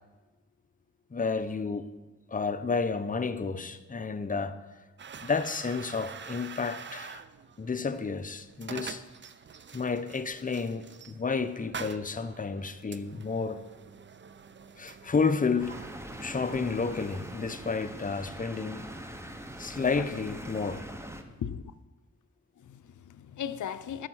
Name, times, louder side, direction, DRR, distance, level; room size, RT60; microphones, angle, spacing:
voice 1, 1.1-1.9 2.3-4.7 5.2-7.2 7.6-9.0 9.7-13.6 14.8-15.8 16.2-18.9 19.6-20.8, left 4 dB, 30° left, 0.5 m, -31 dB
sound 1, 5.0-17.4, right 6 dB, 40° right, 0.4 m, -46 dB
sound 2, 15.6-21.2, right 1 dB, 10° right, 0.7 m, -42 dB
voice 2, 21.3-21.6 22.6-24.1, left 8 dB, 90° left, 0.5 m, -37 dB
8.9 x 6.4 x 6.1 m
wide cardioid pair, 95°, 29 cm